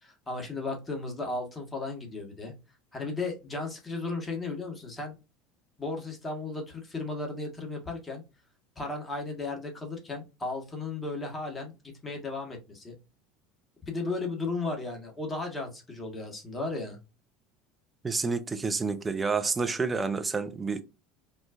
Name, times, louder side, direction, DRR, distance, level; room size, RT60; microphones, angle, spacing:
voice 1, 0.0-2.5 2.9-5.1 5.8-8.2 8.8-11.7 12.0-12.9 13.9-17.0, left 3 dB, 20° left, 1.4 m, -35 dB
voice 2, 18.0-20.8, right 4 dB, 20° right, 0.6 m, -29 dB
4.3 x 2.3 x 2.4 m
figure-of-eight pair, 70°, 0 cm